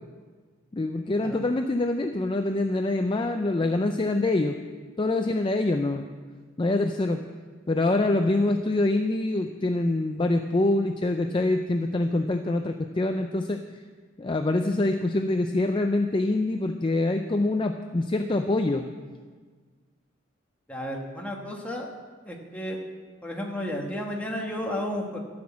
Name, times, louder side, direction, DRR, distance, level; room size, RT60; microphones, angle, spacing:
voice 1, 0.7-4.6 5.0-6.0 6.6-7.2 7.7-13.6 14.2-18.8, left 2 dB, 25° left, 6 dB, 0.4 m, -25 dB
voice 2, 20.7-21.9 22.2-22.8 23.2-25.2, left 1 dB, 5° left, -1 dB, 1.4 m, -32 dB
12.5 x 6.1 x 8.6 m, 1.5 s
head